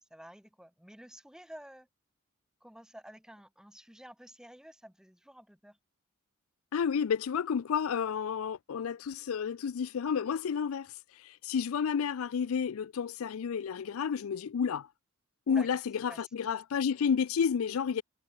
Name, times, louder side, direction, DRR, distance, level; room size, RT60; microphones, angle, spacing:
voice 1, 0.0-1.9 2.6-5.8 15.5-15.7 16.1-16.2, equal, 5° right, 2.8 m, -51 dB
voice 2, 6.7-14.9 15.5-18.0, left 7 dB, 70° left, 0.4 m, -31 dB
head